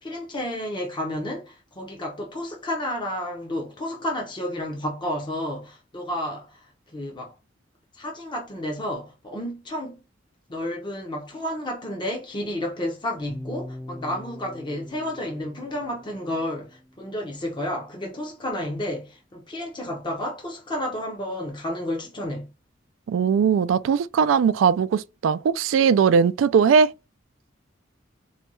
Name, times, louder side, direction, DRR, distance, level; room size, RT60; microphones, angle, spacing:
voice 1, 0.0-7.3 7.9-10.0 10.5-22.5, left 1 dB, 25° left, 0.7 m, -31 dB
sound 1, 13.3-17.4, left 1 dB, ahead, 0.4 m, -42 dB
voice 2, 23.1-26.9, right 6 dB, 90° right, 0.3 m, -19 dB
4.1 x 2.2 x 2.9 m
head